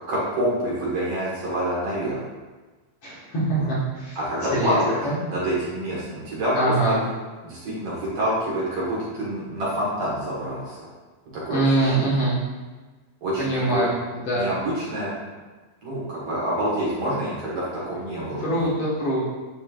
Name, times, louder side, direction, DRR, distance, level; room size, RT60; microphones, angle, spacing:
voice 1, 0.1-2.2 3.5-3.7 4.2-7.0 7.4-10.8 11.3-12.2 13.2-13.9 14.3-15.1 15.8-18.7, right 1 dB, 55° right, -7 dB, 2.2 m, -27 dB
voice 2, 3.0-4.2 4.5-4.8 5.0-5.2 6.6-7.0 11.5-12.4 13.4-13.9 14.3-14.5 18.4-19.2, right 2 dB, 55° left, -9 dB, 2.2 m, -23 dB
10.0 x 4.2 x 2.4 m, 1.3 s
omnidirectional pair, 3.6 m